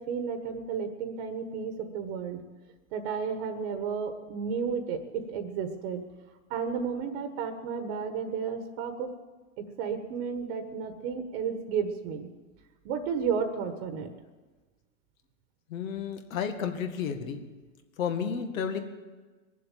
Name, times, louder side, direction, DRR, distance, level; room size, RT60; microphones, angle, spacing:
voice 1, 0.0-2.4 2.9-6.0 6.5-9.1 9.6-12.3 12.8-14.1, right 6 dB, 50° right, 7 dB, 1.5 m, -32 dB
voice 2, 15.7-17.4 18.0-18.8, left 7 dB, 70° left, 6 dB, 2.0 m, -32 dB
21.5 x 7.5 x 7.4 m, 1.3 s
hypercardioid pair, 140°, 41 cm